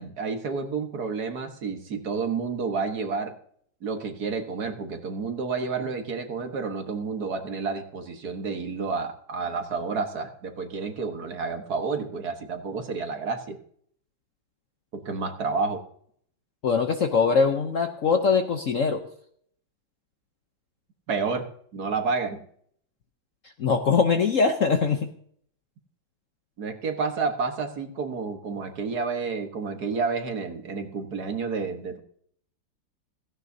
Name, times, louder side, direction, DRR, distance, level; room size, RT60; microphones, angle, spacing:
voice 1, 0.0-3.3 3.8-13.6 14.9-15.8 21.1-22.4 26.6-32.0, right 4 dB, 55° right, 5 dB, 1.8 m, -30 dB
voice 2, 16.6-19.0 23.6-25.1, left 5 dB, 55° left, 6 dB, 0.9 m, -22 dB
16.5 x 15.5 x 2.7 m, 0.62 s
omnidirectional pair, 2.1 m